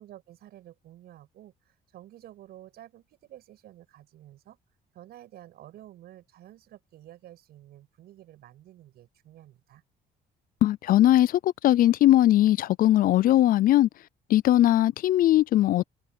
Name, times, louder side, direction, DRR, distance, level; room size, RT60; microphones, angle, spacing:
voice 1, 0.0-4.6 4.9-9.8, right 13 dB, 70° right, 6.7 m, -50 dB
voice 2, 10.6-13.9 14.3-15.9, left 13 dB, 55° left, 0.4 m, -20 dB
cardioid pair, 110°, 17 cm